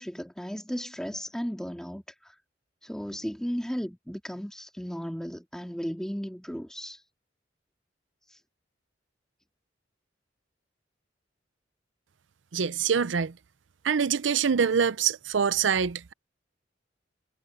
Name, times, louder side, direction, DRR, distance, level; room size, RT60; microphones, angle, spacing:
voice 1, 0.0-2.4 2.8-7.0 8.3-8.4, equal, 5° left, 2.1 m, -35 dB
voice 2, 12.5-13.3 13.8-16.1, right 6 dB, 75° right, 0.6 m, -25 dB
head